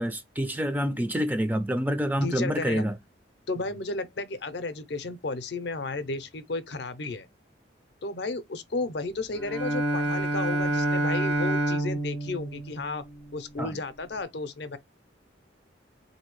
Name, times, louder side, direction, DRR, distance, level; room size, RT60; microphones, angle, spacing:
voice 1, 0.0-2.9 13.6-13.7, equal, 10° right, 0.4 m, -27 dB
voice 2, 2.2-2.8 3.5-7.3 8.0-13.0 13.3-14.8, left 3 dB, 60° left, 0.5 m, -33 dB
Bowed string instrument, 9.3-13.5, right 1 dB, 70° right, 1.1 m, -28 dB
3.9 x 2.7 x 3.0 m
head